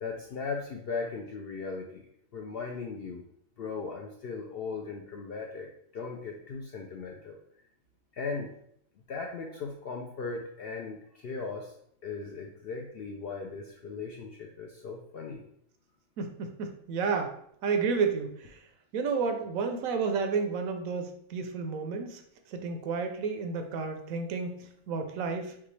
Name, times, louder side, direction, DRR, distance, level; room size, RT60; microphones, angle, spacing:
voice 1, 0.0-2.0 2.3-3.2 3.6-7.4 8.1-8.5 9.1-11.7 12.0-15.4, left 4 dB, 65° left, 1 dB, 0.6 m, -38 dB
voice 2, 16.2-18.6 18.9-22.2 22.5-25.6, right 5 dB, 80° right, 6 dB, 1.0 m, -31 dB
5.7 x 2.3 x 3.2 m, 0.68 s
omnidirectional pair, 1.4 m